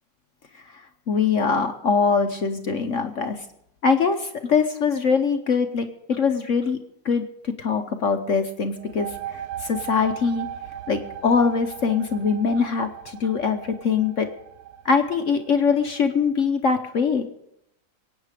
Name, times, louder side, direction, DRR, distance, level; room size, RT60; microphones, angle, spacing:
voice 1, 0.7-3.4 3.8-6.8 7.0-10.5 10.9-14.3 14.8-17.3, left 5 dB, 55° left, 7 dB, 1.0 m, -23 dB
sound 1, 8.8-16.2, right 10 dB, 65° right, 1.1 m, -38 dB
23.0 x 9.1 x 5.0 m, 0.79 s
omnidirectional pair, 2.0 m